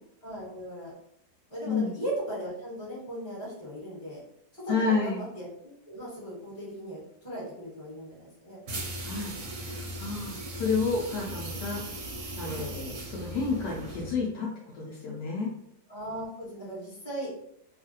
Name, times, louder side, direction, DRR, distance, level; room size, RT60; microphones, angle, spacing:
voice 1, 0.2-0.9 1.5-4.2 4.5-8.6 12.4-12.6 15.9-17.3, right 1 dB, 25° left, -6 dB, 1.4 m, -37 dB
voice 2, 1.6-2.0 4.7-5.2 9.0-9.4 9.7-11.8 12.4-15.5, left 4 dB, 75° left, -3 dB, 1.1 m, -30 dB
sound 1, 8.7-14.3, right 1 dB, 55° right, 0.9 m, -38 dB
3.1 x 2.4 x 2.7 m, 0.76 s
omnidirectional pair, 1.9 m